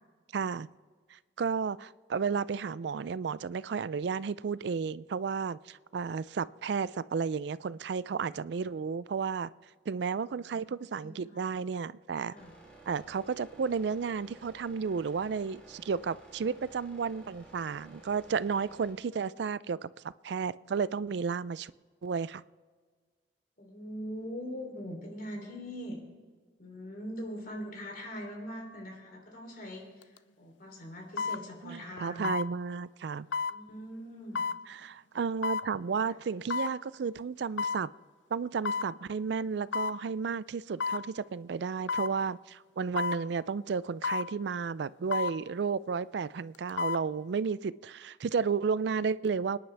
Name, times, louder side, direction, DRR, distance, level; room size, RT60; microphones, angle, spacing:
voice 1, 0.3-0.7 1.1-9.5 9.9-12.3 12.9-21.7 22.0-22.4 31.6-33.3 34.7-37.9 38.3-49.6, right 5 dB, 65° right, 0.4 m, -33 dB
voice 2, 10.0-11.5 12.3-12.5 23.6-26.0 26.6-32.3 33.5-34.4 36.1-36.2, equal, 50° left, 3.3 m, -42 dB
sound 1, 12.4-18.9, right 2 dB, 5° left, 3.6 m, -54 dB
sound 2, 30.0-30.2 31.2-31.4 32.2-32.5 33.3-33.6 34.3-34.6 35.4-35.7 36.5-36.7 37.6-37.8 38.6-38.9 39.7-40.0 40.8-41.1 41.9-42.1 43.0-43.2 44.0-44.3 45.1-45.4 46.5-47.0 47.4-47.5, left 5 dB, 80° left, 0.5 m, -31 dB
25.5 x 10.5 x 3.4 m
head